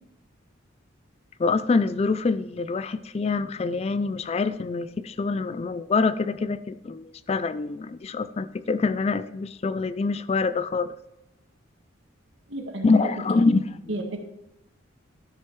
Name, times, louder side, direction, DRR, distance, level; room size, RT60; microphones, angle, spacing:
voice 1, 1.4-10.9 12.8-13.6, left 4 dB, 30° left, 14 dB, 0.3 m, -25 dB
voice 2, 12.5-13.6 13.9-14.2, right 1 dB, 70° right, 3 dB, 1.6 m, -33 dB
12.0 x 6.7 x 4.6 m, 0.91 s
head